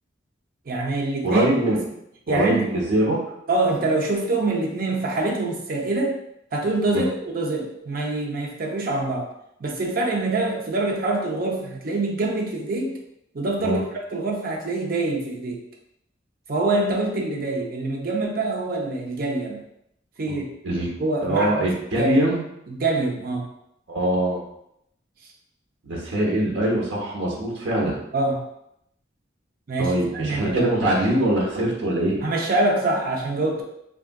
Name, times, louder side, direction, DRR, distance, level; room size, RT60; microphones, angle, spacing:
voice 1, 0.7-1.5 2.3-2.8 3.5-6.2 6.5-9.3 9.6-12.9 13.3-13.8 14.1-15.6 16.5-19.6 20.2-20.5 21.0-21.7 22.0-22.1 22.7-23.4 28.1-28.4 29.7-30.6 32.2-33.6, right 2 dB, 50° right, -1 dB, 0.5 m, -25 dB
voice 2, 1.2-1.8 2.3-3.2 6.9-7.0 13.6-13.8 20.3-20.9 21.2-22.4 23.9-24.4 25.8-28.0 29.8-32.2, right 1 dB, 85° right, -2 dB, 0.9 m, -23 dB
3.5 x 2.4 x 2.2 m, 0.77 s
head